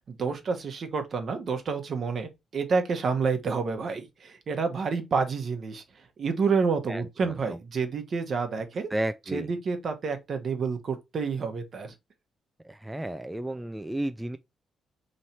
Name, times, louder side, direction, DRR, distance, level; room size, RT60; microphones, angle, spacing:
voice 1, 0.1-5.8 6.2-8.9 9.3-11.9, right 5 dB, 55° right, 0.9 m, -29 dB
voice 2, 6.9-7.6 8.9-9.5 12.6-14.4, right 1 dB, 10° right, 0.3 m, -33 dB
3.1 x 2.7 x 4.3 m
supercardioid pair, 55°, 0 cm